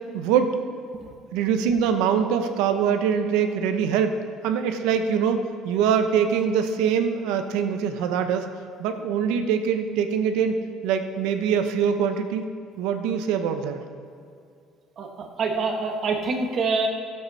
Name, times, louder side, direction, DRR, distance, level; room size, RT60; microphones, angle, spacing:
voice 1, 0.1-0.6 1.3-4.1 4.4-8.5 8.8-10.6 10.8-12.5 12.8-13.8, right 7 dB, 90° right, 7 dB, 0.9 m, -23 dB
voice 2, 15.0-16.9, right 4 dB, 45° right, 2 dB, 1.5 m, -25 dB
15.5 x 7.8 x 4.2 m, 2.3 s
cardioid pair, 125°, 0 cm